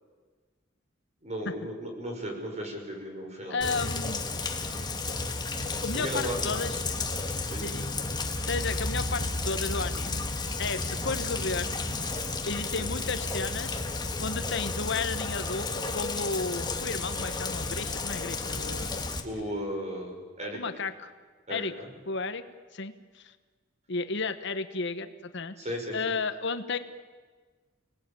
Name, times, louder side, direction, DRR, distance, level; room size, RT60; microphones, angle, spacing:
voice 1, 1.2-3.8 5.9-6.4 7.5-7.7 12.8-12.9 19.2-20.6 21.5-21.9 25.6-26.1, equal, 35° right, 2 dB, 6.2 m, -36 dB
voice 2, 3.5-4.2 5.8-6.9 7.6-7.9 8.5-10.2 10.6-11.8 12.4-13.8 14.2-19.0 20.5-21.1 21.5-21.7 22.1-22.4 22.7-23.3 23.9-25.5 25.9-26.8, left 4 dB, 65° left, 10 dB, 1.3 m, -33 dB
Rain, 3.6-19.2, left 3 dB, 20° left, 2.0 m, -32 dB
29.5 x 19.5 x 9.0 m, 1.4 s
head